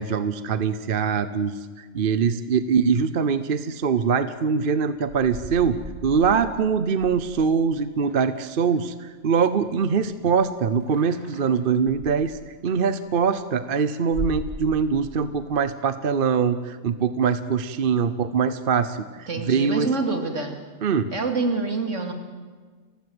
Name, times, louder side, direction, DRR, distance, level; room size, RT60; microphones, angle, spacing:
voice 1, 0.0-19.9 20.8-21.1, right 6 dB, 50° right, 13 dB, 0.9 m, -23 dB
sound 1, 4.8-9.3 9.5-13.3 13.6-15.5, right 1 dB, 30° right, 6.0 m, -39 dB
voice 2, 19.3-20.6 21.1-22.1, right 3 dB, 75° right, 5 dB, 2.8 m, -26 dB
30.0 x 15.5 x 7.9 m, 1.5 s
omnidirectional pair, 1.3 m